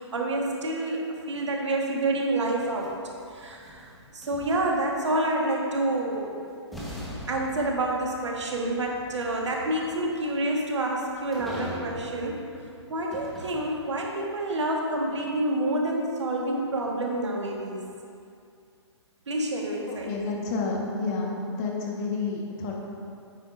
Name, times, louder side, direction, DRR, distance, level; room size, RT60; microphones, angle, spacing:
voice 1, 0.0-3.0 3.3-6.4 7.3-12.4 12.9-17.9 19.3-20.1, right 1 dB, 75° right, -1 dB, 1.4 m, -28 dB
sound 1, 2.5-4.9 6.1-6.2 6.7-14.2, equal, ahead, 1.2 m, -42 dB
voice 2, 19.9-22.8, left 3 dB, 35° left, -1 dB, 1.3 m, -30 dB
9.2 x 7.6 x 2.6 m, 2.4 s
hypercardioid pair, 135°, 15 cm